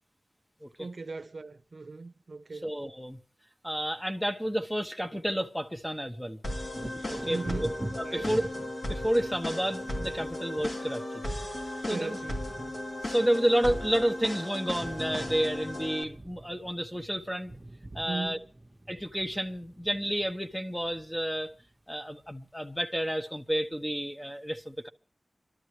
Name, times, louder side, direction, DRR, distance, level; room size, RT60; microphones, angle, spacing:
voice 1, 0.8-2.7 7.3-7.7 8.0-8.3 11.9-12.8 18.0-18.4, right 3 dB, 65° right, 0.6 m, -38 dB
voice 2, 2.6-3.2 3.6-6.4 7.1-7.7 8.0-8.4 8.9-11.0 11.9-12.2 13.1-17.5 17.9-18.4 18.9-21.5 21.9-24.9, equal, 5° left, 1.1 m, -30 dB
sound 1, 6.4-16.0, left 1 dB, 65° left, 2.8 m, -36 dB
Wind / Thunder, 6.7-14.3 14.6-21.8 22.2-22.4, right 1 dB, 30° right, 1.1 m, -45 dB
28.5 x 12.5 x 3.2 m
wide cardioid pair, 75°, 0 cm